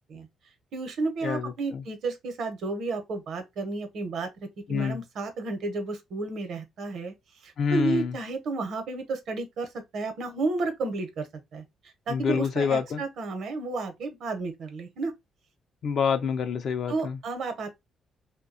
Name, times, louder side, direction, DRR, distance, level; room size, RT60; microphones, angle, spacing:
voice 1, 0.7-4.3 4.7-7.1 7.4-11.3 11.5-11.6 12.1-15.1 16.9-17.7, right 3 dB, 70° right, 0.8 m, -32 dB
voice 2, 1.2-1.8 4.7-5.0 7.6-8.2 12.1-13.0 15.8-17.2, left 6 dB, 60° left, 0.4 m, -27 dB
2.7 x 2.2 x 2.5 m
cardioid pair, 90°, 0 cm